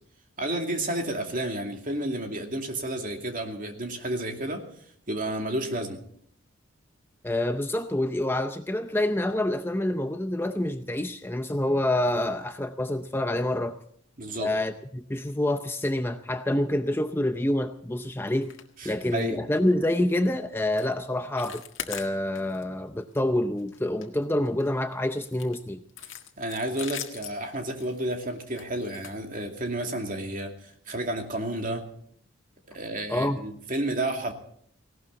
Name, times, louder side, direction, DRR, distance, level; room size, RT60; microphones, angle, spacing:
voice 1, 0.4-4.6 5.1-6.0 14.2-14.5 18.8-19.4 26.4-30.5 30.9-31.8 32.7-34.3, right 1 dB, 40° right, 3 dB, 2.5 m, -31 dB
voice 2, 7.2-13.8 14.4-18.5 18.8-21.6 21.9-25.8 33.1-33.4, left 1 dB, 10° left, 8 dB, 0.6 m, -27 dB
sound 1, 18.4-18.7 18.9-19.3 19.5-19.7 20.2-20.3 20.7-20.9 21.2-22.6 23.0-23.2 23.6-24.7 25.2-29.8 30.6-30.7 31.1-31.2 31.6-31.7, left 9 dB, 65° left, 1.8 m, -42 dB
18.5 x 17.5 x 4.0 m, 0.64 s
head